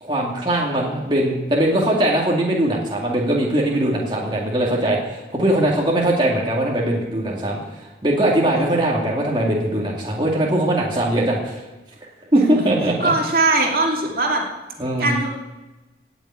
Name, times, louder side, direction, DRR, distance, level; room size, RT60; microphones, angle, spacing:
voice 1, 0.0-11.6 12.3-13.1 14.8-15.2, right 1 dB, 25° right, -3 dB, 2.3 m, -21 dB
voice 2, 12.3-12.7 13.0-14.4 15.0-15.3, right 2 dB, 55° right, 0 dB, 2.7 m, -20 dB
17.5 x 7.2 x 8.9 m, 1.1 s
head